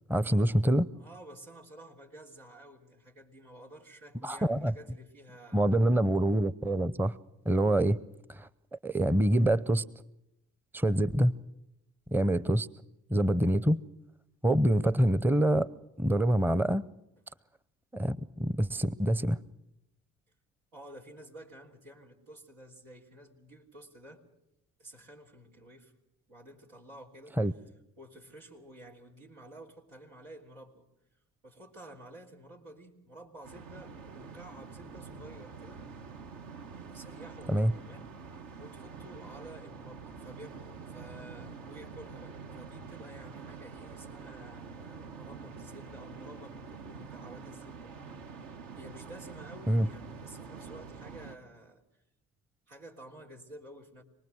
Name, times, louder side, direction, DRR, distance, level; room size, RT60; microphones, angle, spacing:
voice 1, 0.1-0.9 4.2-4.7 5.5-7.2 7.4-8.0 8.3-9.8 10.7-11.4 12.1-12.7 13.1-13.8 14.4-15.7 16.0-16.8 17.9-19.4 27.4-27.5 37.5-37.7 49.7-49.9, right 1 dB, 5° right, 18 dB, 0.7 m, -26 dB
voice 2, 0.9-5.8 20.7-24.2 24.8-25.9 26.3-27.4 28.0-30.8 31.4-35.8 36.9-38.1 38.6-48.4 48.7-52.0 52.7-54.0, right 1 dB, 90° right, -3 dB, 3.4 m, -51 dB
sound 1, 33.4-51.3, right 5 dB, 65° right, 1.6 m, -46 dB
26.5 x 19.5 x 6.4 m, 0.87 s
hypercardioid pair, 50°, 37 cm